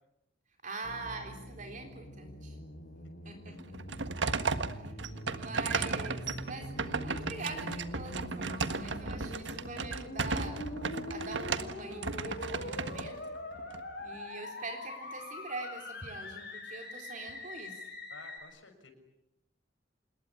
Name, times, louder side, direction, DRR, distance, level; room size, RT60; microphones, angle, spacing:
voice 1, 0.6-2.6 3.3-3.6 4.7-4.9 5.3-10.6 11.1-13.2 14.0-17.8, right 3 dB, 40° right, 3 dB, 3.7 m, -44 dB
sound 1, 0.8-18.4, left 1 dB, 60° left, 7.0 m, -44 dB
sound 2, 3.6-13.8, right 4 dB, 70° right, 1.6 m, -35 dB
voice 2, 18.1-18.9, left 3 dB, 85° left, 5 dB, 6.2 m, -52 dB
27.0 x 21.5 x 9.9 m, 0.86 s
head